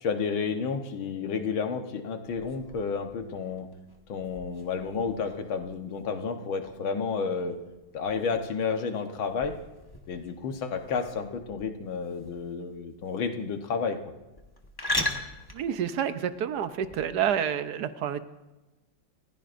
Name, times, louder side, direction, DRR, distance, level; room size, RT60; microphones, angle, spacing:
voice 1, 0.0-3.7 4.1-7.6 7.9-9.5 10.1-14.0, left 5 dB, 90° left, 6 dB, 2.0 m, -31 dB
sound 1, 2.2-17.3, left 1 dB, 15° left, 0.9 m, -40 dB
voice 2, 15.5-18.2, right 9 dB, 65° right, 11 dB, 1.2 m, -29 dB
29.0 x 15.5 x 2.6 m, 1.1 s
omnidirectional pair, 2.1 m